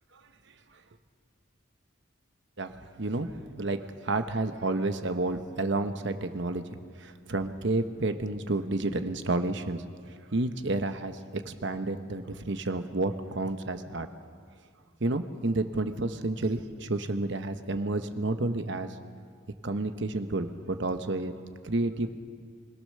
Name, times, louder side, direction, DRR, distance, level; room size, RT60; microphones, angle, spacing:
voice 1, 2.6-6.6 7.0-9.8 10.3-14.1 15.0-18.9 19.6-21.3 21.6-22.2, right 2 dB, 60° right, 8 dB, 1.0 m, -30 dB
25.0 x 17.5 x 6.7 m, 2.1 s
head